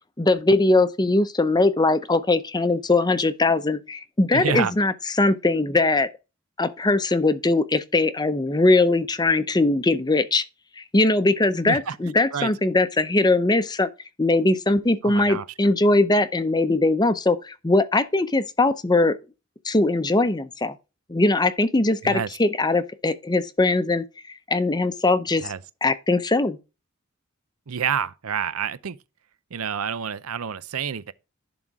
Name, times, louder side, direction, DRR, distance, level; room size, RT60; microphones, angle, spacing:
voice 1, 0.2-4.9 5.2-6.1 6.6-10.4 10.8-13.9 14.2-19.1 19.6-20.7 21.1-24.0 24.5-25.5 25.8-26.6, left 2 dB, 20° left, 0.6 m, -21 dB
voice 2, 4.3-4.7 11.6-12.0 12.3-12.5 15.0-15.5 22.0-22.3 25.4-25.6 27.7-29.0 29.5-31.1, right 7 dB, 85° right, 0.6 m, -28 dB
11.0 x 3.9 x 4.7 m
head